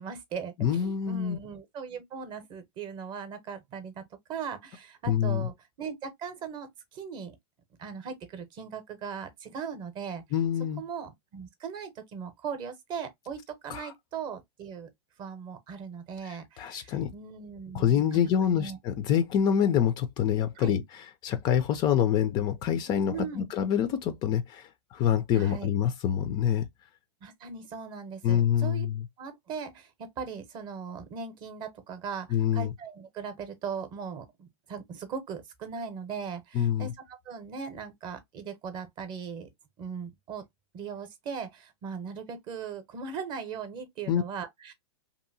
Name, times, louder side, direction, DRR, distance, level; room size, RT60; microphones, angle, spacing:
voice 1, 0.0-7.3 7.8-10.2 10.8-14.9 15.2-18.8 20.6-20.7 23.1-23.5 25.3-25.7 27.2-28.9 29.2-39.5 39.8-40.4 40.7-44.7, right 6 dB, 30° right, 0.7 m, -39 dB
voice 2, 0.6-1.4 5.1-5.5 10.3-10.8 13.7-13.9 16.2-17.1 17.7-20.8 21.2-26.7 28.2-29.0 32.3-32.7 36.5-36.9 44.1-44.2, left 9 dB, 30° left, 0.3 m, -26 dB
2.7 x 2.5 x 2.6 m
hypercardioid pair, 135°, 15 cm